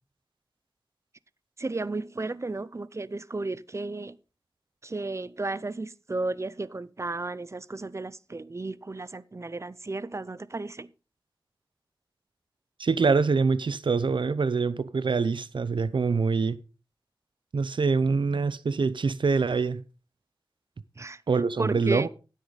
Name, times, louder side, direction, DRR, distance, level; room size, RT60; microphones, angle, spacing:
voice 1, 1.6-4.2 4.8-10.9 21.0-21.2 21.6-22.1, right 2 dB, 35° right, 0.6 m, -33 dB
voice 2, 12.8-16.6 17.5-19.8 21.3-22.1, right 4 dB, 70° right, 0.8 m, -25 dB
15.0 x 8.4 x 4.1 m
wide cardioid pair, 85°, 9 cm